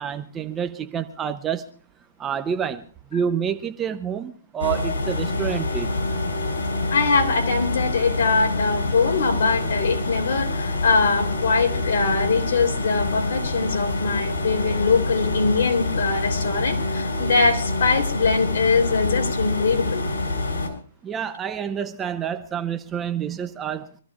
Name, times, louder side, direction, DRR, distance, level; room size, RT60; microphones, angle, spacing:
voice 1, 0.0-1.7 2.2-2.9 3.1-5.9 21.0-23.9, right 8 dB, 15° right, 0.7 m, -28 dB
sound 1, 4.6-20.7, left 2 dB, 75° left, 5.4 m, -26 dB
voice 2, 6.9-20.0, left 4 dB, 55° left, 3.5 m, -22 dB
25.5 x 14.5 x 2.5 m
hypercardioid pair, 160°, 0 cm